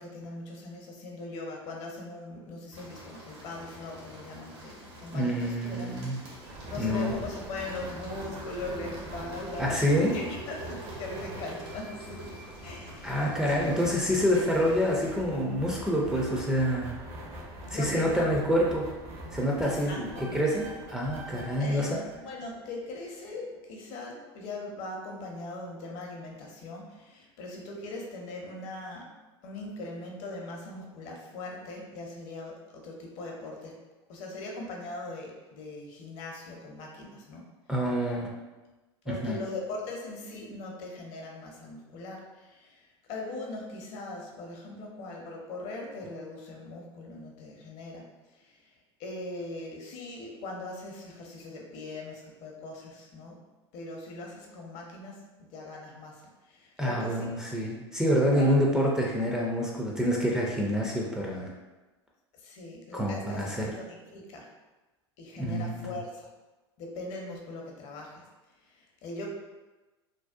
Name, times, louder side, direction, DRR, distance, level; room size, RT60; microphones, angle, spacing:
voice 1, 0.0-6.0 6.7-13.8 17.7-18.4 19.6-20.3 21.6-29.1 29.4-33.7 34.1-37.5 39.0-53.4 53.7-57.4 58.3-58.5 62.3-64.5 65.2-66.3 66.8-68.2 68.6-69.3, left 2 dB, 50° left, 0 dB, 0.6 m, -40 dB
sound 1, 2.7-15.2, equal, 75° right, 1.0 m, -48 dB
voice 2, 5.1-6.2 6.8-7.1 9.6-10.1 13.0-17.0 17.7-18.9 19.3-22.0 37.7-38.3 39.2-39.4 56.8-61.5 62.9-63.7 65.4-65.9, equal, 5° right, -4 dB, 0.4 m, -27 dB
sound 2, 6.4-22.9, right 1 dB, 45° right, 0.6 m, -43 dB
2.6 x 2.1 x 2.4 m, 1.1 s
hypercardioid pair, 90°, 14 cm